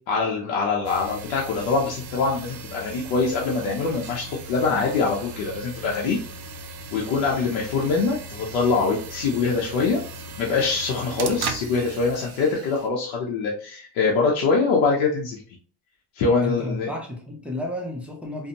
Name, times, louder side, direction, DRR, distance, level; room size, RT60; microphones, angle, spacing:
voice 1, 0.1-6.2 6.9-10.0 10.4-15.4 16.2-16.9, left 4 dB, 85° left, 0.7 m, -24 dB
sound 1, 0.8-12.9, right 3 dB, 55° right, 0.5 m, -38 dB
voice 2, 16.4-18.5, left 1 dB, 5° right, 0.6 m, -32 dB
2.6 x 2.1 x 2.8 m
supercardioid pair, 75°, 46 cm